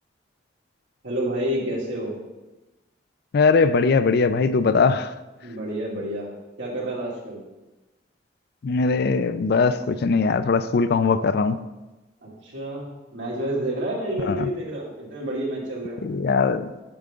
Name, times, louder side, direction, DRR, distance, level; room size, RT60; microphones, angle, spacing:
voice 1, 1.0-2.1 5.4-6.3 6.6-7.4 12.2-16.0, right 1 dB, 85° right, -5 dB, 2.6 m, -29 dB
voice 2, 3.3-5.1 8.6-11.6 14.3-14.5 16.0-16.7, left 4 dB, 60° left, 13 dB, 0.4 m, -20 dB
8.7 x 3.7 x 6.6 m, 1.1 s
head